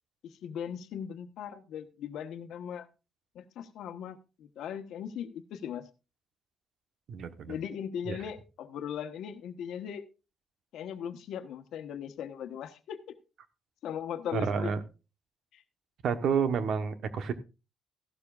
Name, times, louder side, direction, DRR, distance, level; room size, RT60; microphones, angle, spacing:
voice 1, 0.2-2.9 3.3-5.8 7.5-10.0 10.7-13.1 13.8-14.7 15.5-15.6, left 8 dB, 75° left, 8 dB, 1.1 m, -39 dB
voice 2, 7.1-7.6 8.1-8.2 14.3-14.8 16.0-17.3, right 6 dB, 55° right, 11 dB, 1.1 m, -29 dB
14.5 x 12.0 x 2.4 m, 0.29 s
cardioid pair, 160°, 0 cm